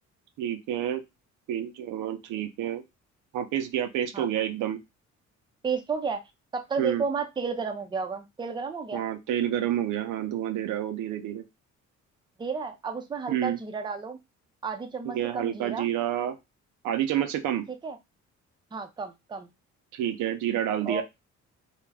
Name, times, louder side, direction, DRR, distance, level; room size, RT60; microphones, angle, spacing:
voice 1, 0.4-1.0 1.5-2.8 3.3-4.8 6.8-7.0 8.9-11.4 13.3-13.6 15.0-16.4 16.8-17.6 19.9-21.0, right 11 dB, 85° right, 8 dB, 0.5 m, -29 dB
voice 2, 5.6-6.2 6.5-9.0 12.4-14.2 14.6-15.9 17.7-18.0 18.7-19.5 20.8-21.0, right 5 dB, 15° right, 6 dB, 0.4 m, -32 dB
2.3 x 2.1 x 3.3 m, 0.22 s
cardioid pair, 90°, 30 cm